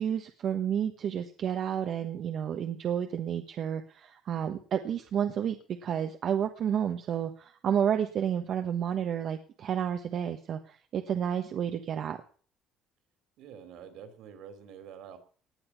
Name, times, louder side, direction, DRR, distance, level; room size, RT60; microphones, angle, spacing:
voice 1, 0.0-12.2, right 9 dB, 45° right, 6 dB, 1.2 m, -31 dB
voice 2, 13.4-15.2, right 8 dB, 65° right, 10 dB, 3.5 m, -47 dB
18.5 x 10.5 x 5.9 m, 0.44 s
cardioid pair, 165°, 0 cm